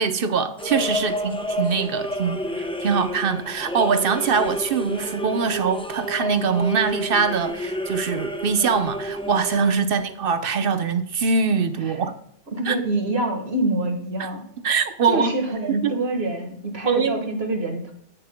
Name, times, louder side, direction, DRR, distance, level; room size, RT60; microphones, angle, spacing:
voice 1, 0.0-12.1 12.7-12.8 14.2-14.3 14.6-15.3 15.7-15.9 16.9-17.2, right 5 dB, 65° right, 1.0 m, -23 dB
sound 1, 0.6-9.7, equal, 5° left, 0.6 m, -30 dB
voice 2, 12.5-14.4 15.1-17.9, right 2 dB, 80° right, 1.9 m, -26 dB
17.0 x 6.5 x 2.2 m
omnidirectional pair, 1.0 m